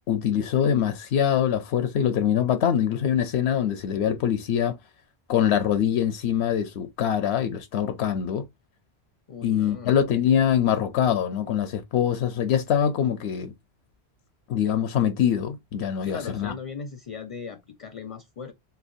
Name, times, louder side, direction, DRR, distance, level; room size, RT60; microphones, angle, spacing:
voice 1, 0.1-4.8 5.3-8.5 9.4-13.5 14.5-16.5, left 9 dB, 85° left, 0.9 m, -24 dB
voice 2, 9.3-10.0 16.0-18.5, left 5 dB, 45° left, 0.5 m, -38 dB
3.3 x 2.8 x 2.5 m
omnidirectional pair, 1.1 m